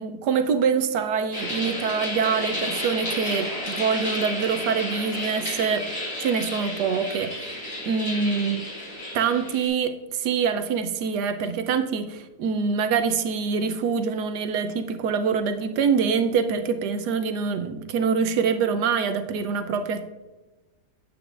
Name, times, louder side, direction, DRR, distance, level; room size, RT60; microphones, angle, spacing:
voice 1, 0.0-5.9 6.2-7.6 7.9-8.6 9.1-20.0, right 6 dB, 75° right, 9 dB, 1.1 m, -25 dB
sound 1, 1.3-9.7, left 1 dB, 45° left, 3.1 m, -32 dB
8.6 x 8.3 x 2.5 m, 1.1 s
omnidirectional pair, 1.9 m